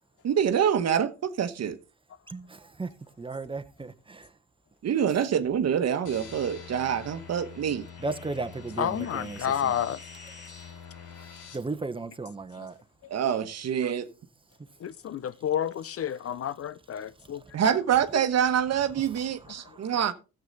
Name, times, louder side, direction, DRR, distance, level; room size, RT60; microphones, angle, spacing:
voice 1, 0.2-1.8 4.8-7.8 13.1-14.1 17.5-20.1, right 8 dB, 60° right, 1.2 m, -26 dB
voice 2, 2.3-4.3 8.0-9.7 11.5-12.8 19.6-19.9, right 3 dB, 15° right, 1.2 m, -36 dB
sound 1, 6.0-11.6, left 6 dB, 85° left, 3.3 m, -45 dB
voice 3, 8.8-10.0 12.6-12.7 14.8-17.4, left 9 dB, 50° left, 0.6 m, -30 dB
13.5 x 8.1 x 4.0 m
cardioid pair, 90°, 30 cm